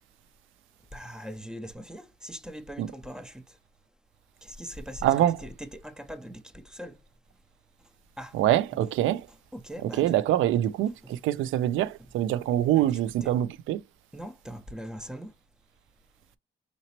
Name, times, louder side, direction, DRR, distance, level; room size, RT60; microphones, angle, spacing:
voice 1, 0.9-3.4 4.4-5.1 5.4-7.0 8.2-8.4 9.5-10.1 11.0-11.1 12.8-12.9 13.2-13.3 14.1-15.3, equal, 5° right, 0.6 m, -41 dB
voice 2, 5.0-5.4 8.3-9.2 9.8-13.8, right 12 dB, 85° right, 0.4 m, -25 dB
3.9 x 3.0 x 2.9 m
cardioid pair, 90°, 20 cm